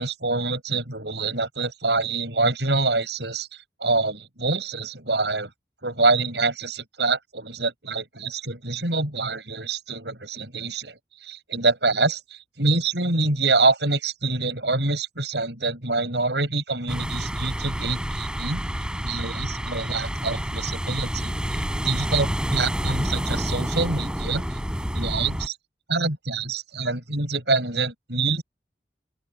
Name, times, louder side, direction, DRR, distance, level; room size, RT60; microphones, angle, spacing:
voice 1, 0.0-3.5 3.8-5.5 5.8-18.6 19.0-24.6 24.9-25.6 25.9-28.4, right 3 dB, 75° right, 7.4 m, -26 dB
sound 1, 16.9-25.5, equal, 5° right, 7.5 m, -28 dB
open air
head